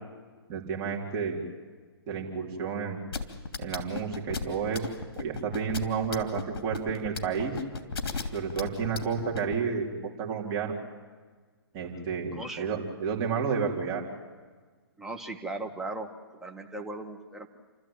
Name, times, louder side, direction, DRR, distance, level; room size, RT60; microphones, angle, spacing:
voice 1, 0.5-1.4 2.1-3.0 3.6-7.6 8.3-10.8 11.7-14.0, right 6 dB, 25° right, -1 dB, 4.0 m, -31 dB
sound 1, 3.1-9.6, left 4 dB, 60° left, 2.9 m, -34 dB
voice 2, 12.3-12.6 15.0-16.1 16.4-17.5, right 2 dB, 5° right, 2 dB, 1.6 m, -37 dB
29.0 x 13.5 x 9.1 m, 1.5 s
hypercardioid pair, 140°, 13 cm